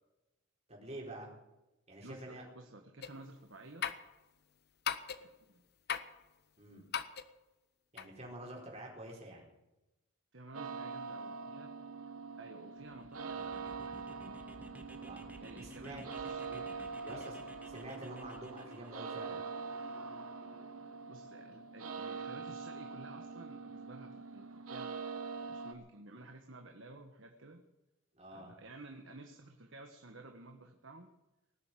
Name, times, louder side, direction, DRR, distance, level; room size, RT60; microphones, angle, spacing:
voice 1, 0.7-1.3 1.9-2.4 6.6-6.8 7.9-9.5 15.0-15.2 15.6-16.0 17.0-19.5 28.1-28.5, right 1 dB, 30° right, -1 dB, 4.5 m, -47 dB
voice 2, 2.0-3.9 5.2-5.6 10.3-11.8 12.4-14.3 15.4-16.6 16.9-17.2 21.1-24.9 25.4-27.6 28.3-31.1, right 2 dB, 60° right, 4 dB, 1.5 m, -53 dB
sound 1, 3.0-3.3 3.8-4.1 4.9-5.4 5.9-6.2 6.9-7.3 8.0-8.1, left 8 dB, 50° left, 0.9 m, -38 dB
sound 2, 10.5-25.7, right 4 dB, 85° right, 1.6 m, -44 dB
sound 3, 12.8-18.9, right 1 dB, 5° right, 1.2 m, -55 dB
19.0 x 7.9 x 9.2 m, 0.98 s
head